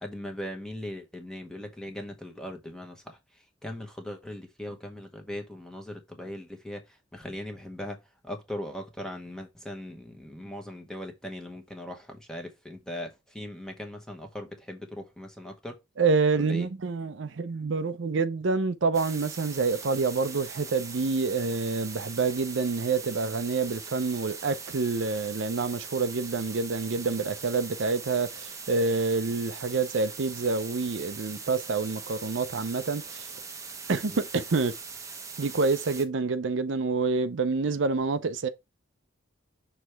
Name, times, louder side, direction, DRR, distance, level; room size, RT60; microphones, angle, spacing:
voice 1, 0.0-8.0 8.2-15.8 16.3-16.7 34.1-34.2, left 1 dB, 5° left, 1.0 m, -39 dB
voice 2, 16.0-33.2 33.9-34.7 35.4-38.5, right 4 dB, 75° right, 0.6 m, -27 dB
sound 1, 18.9-36.0, right 5 dB, 15° right, 0.7 m, -41 dB
6.2 x 3.3 x 4.5 m
head